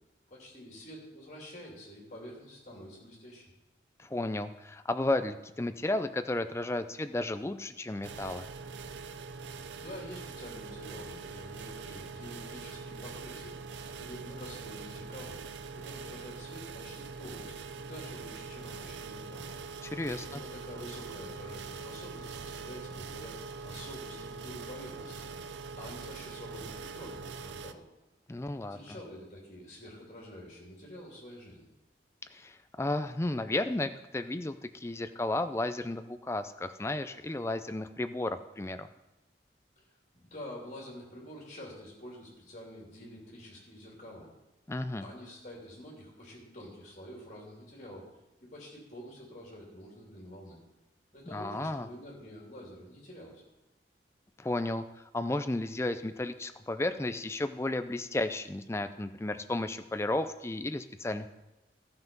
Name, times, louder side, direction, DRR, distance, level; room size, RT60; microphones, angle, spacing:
voice 1, 0.3-3.5 9.2-13.6 14.0-15.4 15.7-19.5 20.3-25.3 25.7-27.8 28.7-31.6 40.1-44.3 45.0-48.1 48.4-50.6 51.1-53.4, equal, 40° left, -2 dB, 2.9 m, -47 dB
voice 2, 4.0-8.5 19.8-20.4 28.3-29.0 32.3-38.9 44.7-45.1 51.3-51.9 54.4-54.8 55.1-61.3, left 2 dB, 15° left, 10 dB, 0.4 m, -33 dB
sound 1, 8.0-27.7, right 4 dB, 75° right, 0.5 m, -43 dB
13.0 x 5.9 x 5.3 m, 1.0 s
head